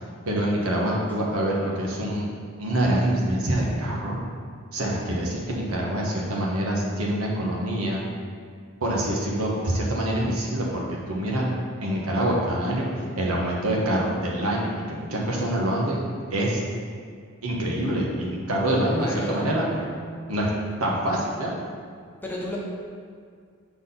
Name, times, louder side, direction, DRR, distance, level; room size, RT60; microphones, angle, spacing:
voice 1, 0.2-2.3 2.6-4.2 4.7-8.0 8.8-11.5 11.8-16.0 16.3-16.6 17.4-19.9 20.3-20.5 20.8-21.5, right 1 dB, 90° right, -3 dB, 1.3 m, -25 dB
voice 2, 18.9-19.5 22.2-22.6, left 1 dB, 10° left, -4 dB, 1.0 m, -33 dB
6.0 x 4.2 x 5.7 m, 2.1 s
head